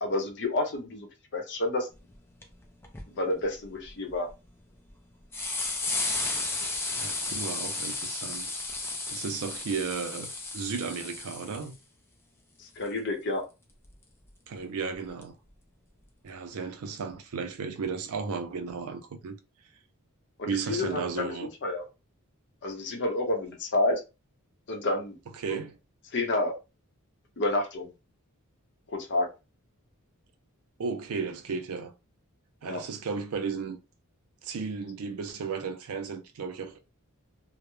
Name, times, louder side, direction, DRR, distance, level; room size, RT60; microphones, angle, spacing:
voice 1, 0.0-1.9 3.1-4.3 12.6-13.4 20.4-21.3 21.6-21.8 22.6-24.0 24.7-25.2 25.4-25.6 26.1-26.5 27.4-27.9 28.9-29.3 32.7-32.8, left 2 dB, 55° left, 0.6 m, -29 dB
sound 1, 2.1-2.2 2.4-2.5 2.8-3.0 3.6-4.3 4.9-5.0 5.3-11.7 13.9-14.0 15.2-15.3, left 3 dB, 10° left, 0.4 m, -33 dB
voice 2, 7.0-8.5 9.1-11.8 14.5-15.3 16.2-19.4 20.5-21.5 25.3-25.8 30.8-31.9 32.6-33.8 34.4-36.8, right 5 dB, 75° right, 0.4 m, -34 dB
2.2 x 2.0 x 3.0 m
head